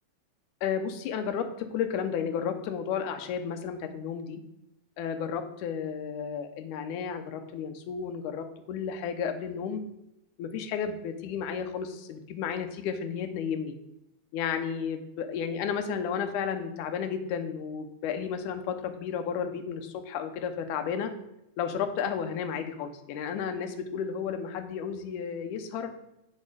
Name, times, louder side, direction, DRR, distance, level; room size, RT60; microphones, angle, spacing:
voice 1, 0.6-4.4 5.0-9.8 10.4-13.7 14.3-21.1 21.6-25.9, left 7 dB, 75° left, 7 dB, 2.2 m, -32 dB
7.4 x 6.5 x 4.9 m, 0.86 s
omnidirectional pair, 3.8 m